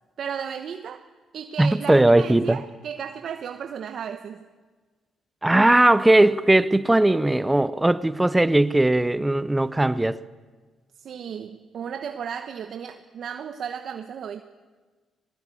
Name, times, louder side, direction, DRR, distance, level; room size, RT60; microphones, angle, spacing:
voice 1, 0.2-1.1 1.3-4.4 11.0-14.4, right 7 dB, 60° right, 7 dB, 1.1 m, -34 dB
voice 2, 1.6-2.6 5.4-10.2, right 1 dB, 10° right, 15 dB, 0.7 m, -19 dB
21.0 x 19.5 x 8.6 m, 1.4 s
cardioid pair, 90°, 0 cm